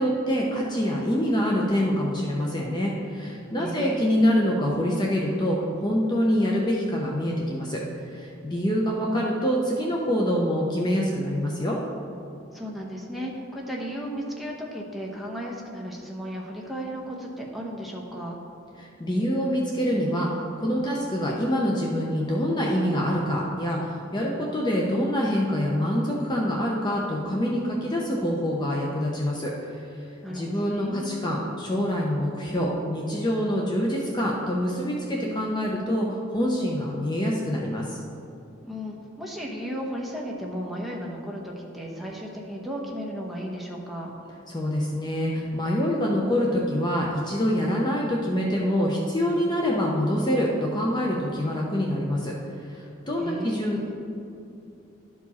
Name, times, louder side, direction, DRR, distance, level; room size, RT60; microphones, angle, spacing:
voice 1, 0.0-11.8 18.8-38.0 44.5-53.8, equal, 25° left, -2 dB, 0.7 m, -25 dB
voice 2, 3.6-4.4 12.5-18.4 30.2-31.3 38.6-44.1 53.2-53.9, equal, ahead, -2 dB, 1.0 m, -35 dB
12.0 x 4.7 x 4.2 m, 2.6 s
head